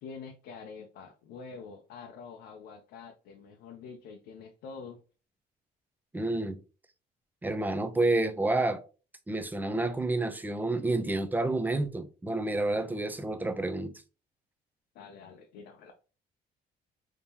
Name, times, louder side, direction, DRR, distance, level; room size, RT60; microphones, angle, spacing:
voice 1, 0.0-5.0 14.9-15.9, left 5 dB, 85° left, 0.6 m, -46 dB
voice 2, 6.1-6.6 7.4-8.8 9.3-13.9, right 2 dB, 10° right, 0.4 m, -29 dB
3.6 x 2.8 x 2.8 m
cardioid pair, 110°, 17 cm